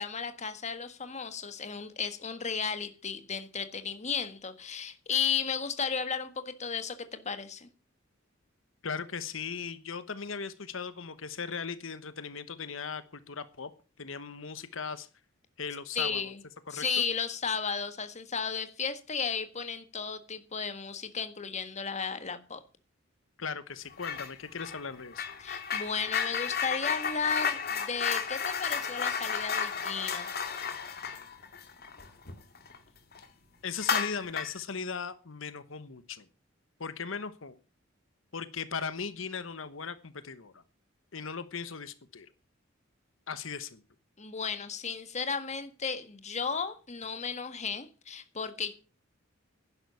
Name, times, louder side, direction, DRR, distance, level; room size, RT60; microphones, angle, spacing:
voice 1, 0.0-7.7 15.9-16.4 16.7-22.6 25.4-30.3 44.2-48.7, left 6 dB, 35° left, 1.6 m, -34 dB
voice 2, 8.8-13.7 14.0-15.1 15.6-16.2 16.7-16.8 23.4-25.3 33.6-36.3 36.8-37.6 38.3-40.6 41.1-42.3 43.3-43.8, left 5 dB, 80° left, 1.1 m, -38 dB
sound 1, 24.0-24.3 24.6-32.8 33.1-33.2 33.8-34.6, left 6 dB, 50° left, 2.5 m, -33 dB
11.5 x 10.5 x 7.0 m
head